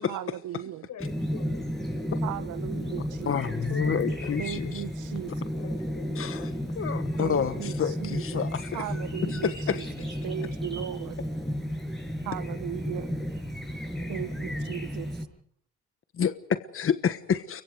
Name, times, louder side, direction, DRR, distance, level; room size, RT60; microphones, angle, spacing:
voice 1, 0.1-0.9 2.2-3.6 4.4-5.3 7.2-8.5 8.7-9.9 10.2-11.2 12.2-13.2 14.1-15.1, right 12 dB, 90° right, 1.6 m, -37 dB
voice 2, 0.6-1.6 3.7-4.7 5.3-6.9, left 6 dB, 70° left, 6.5 m, -44 dB
Chirp tweet, 1.0-15.2, equal, ahead, 7.1 m, -33 dB
voice 3, 3.3-4.8 6.2-6.4 6.8-8.8 9.7-9.8 16.2-17.6, left 7 dB, 45° left, 1.4 m, -29 dB
29.5 x 24.0 x 4.9 m
cardioid pair, 90°, 30 cm